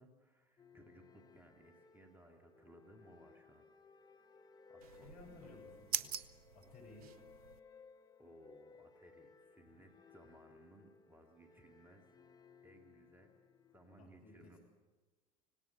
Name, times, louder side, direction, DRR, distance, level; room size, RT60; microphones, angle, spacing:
voice 1, 0.0-3.6 4.7-5.5 8.2-12.2 12.6-13.3 13.7-14.6, right 1 dB, 10° right, 3 dB, 2.3 m, -62 dB
sound 1, 0.6-14.0, left 5 dB, 20° left, 1.3 m, -62 dB
sound 2, 4.8-7.6, right 8 dB, 75° right, 0.8 m, -44 dB
voice 2, 4.9-6.1 6.5-7.1 14.0-14.6, left 2 dB, 45° left, 1 dB, 7.9 m, -58 dB
18.0 x 18.0 x 8.0 m, 1.2 s
hypercardioid pair, 75°, 19 cm